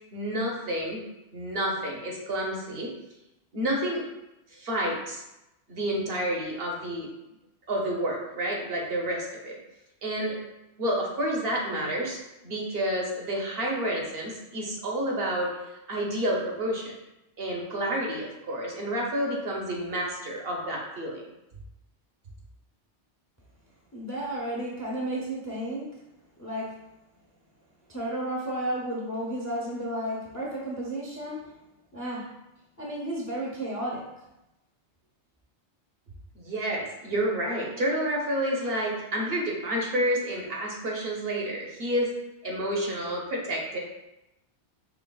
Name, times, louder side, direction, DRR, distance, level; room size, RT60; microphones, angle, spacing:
voice 1, 0.1-1.0 1.3-2.9 3.5-4.0 4.5-5.2 5.7-7.1 7.7-9.6 10.0-10.4 10.8-15.5 15.9-16.9 17.4-21.2 36.4-42.1 42.4-43.8, right 1 dB, 60° right, -1 dB, 0.9 m, -29 dB
voice 2, 23.9-25.9 26.4-26.7 27.9-31.4 31.9-32.2 32.8-34.0, right 1 dB, 20° left, -4 dB, 0.5 m, -32 dB
4.6 x 3.0 x 2.2 m, 0.93 s
omnidirectional pair, 1.2 m